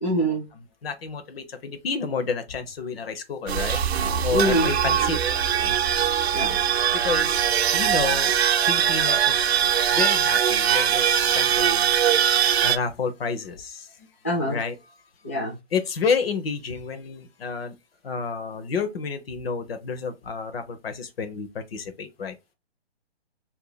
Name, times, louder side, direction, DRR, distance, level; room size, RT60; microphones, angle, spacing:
voice 1, 0.0-0.5 4.3-4.7 6.3-6.6 14.2-14.6 15.2-15.6, equal, 15° left, 0.3 m, -24 dB
voice 2, 0.5-3.8 4.2-5.2 5.6-5.8 6.9-7.4 7.7-8.3 8.7-9.5 9.9-12.0 12.6-13.9 14.5-14.7 15.7-17.8 18.0-22.3, left 5 dB, 65° left, 0.8 m, -30 dB
sound 1, 3.5-12.8, right 9 dB, 75° right, 0.6 m, -21 dB
2.8 x 2.7 x 3.9 m
hypercardioid pair, 165°, 32 cm